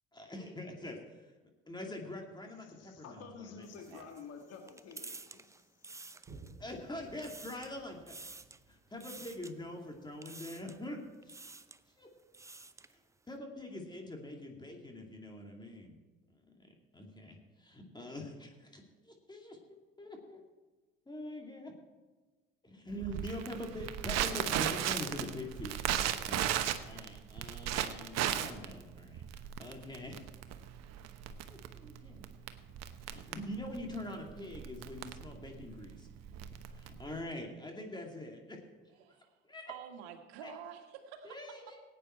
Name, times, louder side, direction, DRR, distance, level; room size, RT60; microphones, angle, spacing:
voice 1, 0.1-1.3 1.7-3.6 6.6-8.2 8.7-11.3 12.0-12.1 12.9-13.0 13.3-16.0 16.3-20.4 21.1-21.7 22.6-25.7 26.3-26.5 26.9-30.2 31.5-32.2 33.0-36.1 36.5-39.2 39.4-39.7 40.4-40.5 41.2-41.8, left 1 dB, 15° left, 2 dB, 2.4 m, -44 dB
voice 2, 2.6-5.9, left 5 dB, 55° left, 4 dB, 2.1 m, -50 dB
sound 1, 3.6-6.7 7.0-7.8 8.1-8.6 9.0-9.5 10.2-10.8 11.2-11.8 12.2-12.9, right 3 dB, 10° right, 0.6 m, -50 dB
Boom, 6.2-13.2 13.7-13.8, right 3 dB, 30° right, 2.9 m, -59 dB
Crackle, 23.0-37.2, right 11 dB, 60° right, 1.0 m, -36 dB
voice 3, 39.0-39.3 39.7-41.4, right 8 dB, 75° right, 5 dB, 1.7 m, -48 dB
17.0 x 9.2 x 4.4 m, 1.3 s
hypercardioid pair, 75°, 30 cm